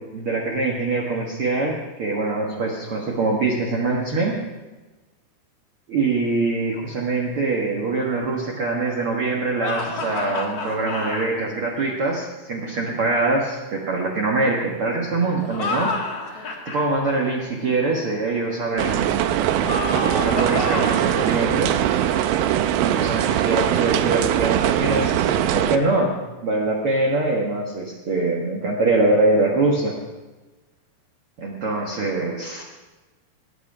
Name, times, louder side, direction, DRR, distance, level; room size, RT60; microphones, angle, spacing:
voice 1, 0.1-4.4 5.9-15.9 16.2-19.3 20.0-21.7 22.8-26.2 26.4-29.9 31.4-32.6, right 3 dB, 50° right, -2 dB, 1.7 m, -23 dB
sound 1, 9.6-11.3 15.4-16.9 19.6-21.1, left 3 dB, 45° left, 2.5 m, -29 dB
sound 2, 18.8-25.8, right 11 dB, 80° right, 2.3 m, -21 dB
20.0 x 10.0 x 4.9 m, 1.2 s
omnidirectional pair, 4.7 m